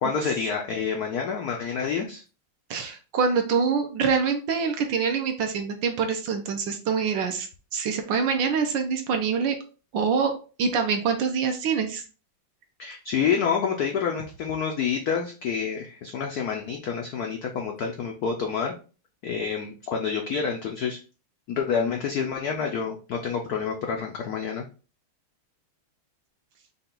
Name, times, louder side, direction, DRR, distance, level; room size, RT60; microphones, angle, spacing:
voice 1, 0.0-2.2 12.8-18.7 19.2-21.0 21.5-24.7, left 6 dB, 85° left, 2 dB, 0.8 m, -28 dB
voice 2, 2.7-9.5 9.9-10.3 10.6-12.0, right 5 dB, 70° right, 4 dB, 1.2 m, -25 dB
5.6 x 2.3 x 3.8 m, 0.35 s
omnidirectional pair, 2.4 m